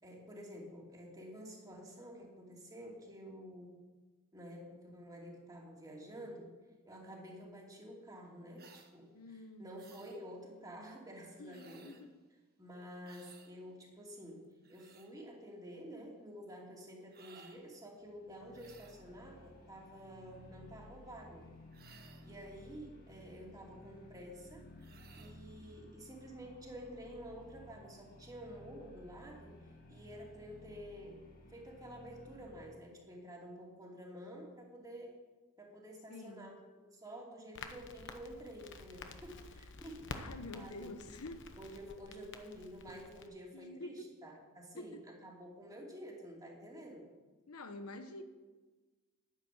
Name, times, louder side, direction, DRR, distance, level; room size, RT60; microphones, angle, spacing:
voice 1, 0.0-3.7 4.3-6.5 6.9-9.1 9.6-11.9 12.6-14.4 14.7-21.4 22.2-24.7 25.2-29.6 29.9-31.2 31.5-35.2 35.6-36.6 36.9-40.9 41.6-43.9 44.2-45.0 45.2-47.1, equal, 15° right, -2 dB, 2.8 m, -50 dB
sound 1, 8.6-8.9 9.8-10.2 11.5-12.1 13.0-13.5 14.4-15.1 17.1-17.6 18.5-19.1 21.7-22.4 24.8-25.4, right 6 dB, 45° right, 1.3 m, -60 dB
voice 2, 9.1-10.0 11.4-12.1 36.1-36.6 40.1-41.4 43.5-44.1 44.8-45.0 47.5-48.2, left 2 dB, 85° left, 8 dB, 1.1 m, -48 dB
sound 2, 18.0-32.8, left 1 dB, 40° left, 2.0 m, -57 dB
Crackle, 37.5-43.3, left 3 dB, 55° left, 1.1 m, -50 dB
10.5 x 10.5 x 7.3 m, 1.3 s
head